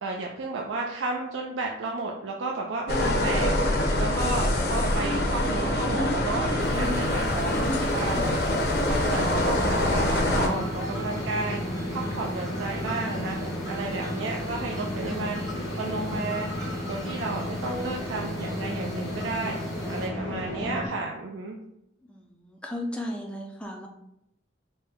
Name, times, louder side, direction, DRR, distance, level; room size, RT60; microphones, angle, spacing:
voice 1, 0.0-3.6 4.0-11.6 11.9-13.4 13.7-15.5 15.8-16.5 16.9-19.6 19.9-21.6, right 3 dB, 70° right, 0 dB, 0.4 m, -32 dB
sound 1, 2.9-10.5, left 1 dB, 50° left, 0.6 m, -24 dB
sound 2, 6.6-20.1, right 1 dB, 15° right, 0.8 m, -44 dB
sound 3, 10.3-20.9, left 1 dB, 80° left, 0.8 m, -33 dB
voice 2, 22.1-23.9, left 1 dB, 5° left, 1 dB, 0.4 m, -35 dB
4.2 x 2.2 x 3.6 m, 0.80 s
head